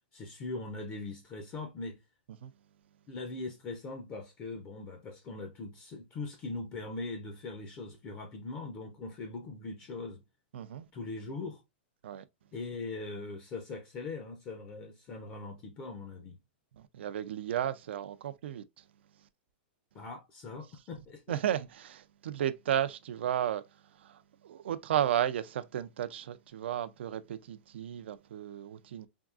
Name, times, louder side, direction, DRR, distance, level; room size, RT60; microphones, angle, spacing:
voice 1, 0.1-2.0 3.1-10.2 10.9-11.6 12.5-16.4 19.9-21.4, left 3 dB, 25° left, 0.5 m, -41 dB
voice 2, 10.5-10.9 12.0-12.2 16.8-18.8 21.3-29.1, right 10 dB, 75° right, 0.3 m, -34 dB
3.5 x 2.3 x 2.4 m
hypercardioid pair, 150°, 6 cm